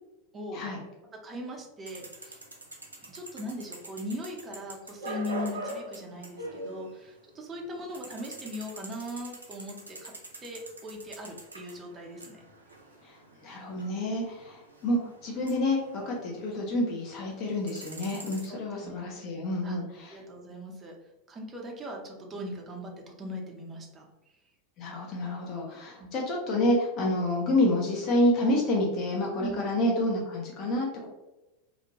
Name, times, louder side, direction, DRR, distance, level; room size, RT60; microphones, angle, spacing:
voice 1, 1.2-2.4 3.0-10.1 10.4-12.4 18.5-19.1 19.6-19.8 20.1-20.9 21.3-24.1 26.0-26.1 29.4-29.6, left 1 dB, 25° right, 0 dB, 0.7 m, -39 dB
sound 1, 1.9-7.3 7.6-16.9 17.3-18.5, right 2 dB, 90° right, 0.4 m, -43 dB
voice 2, 13.0-20.2 24.8-31.1, left 1 dB, 45° left, -2 dB, 0.7 m, -28 dB
2.5 x 2.1 x 2.9 m, 1.0 s
figure-of-eight pair, 85°, 0 cm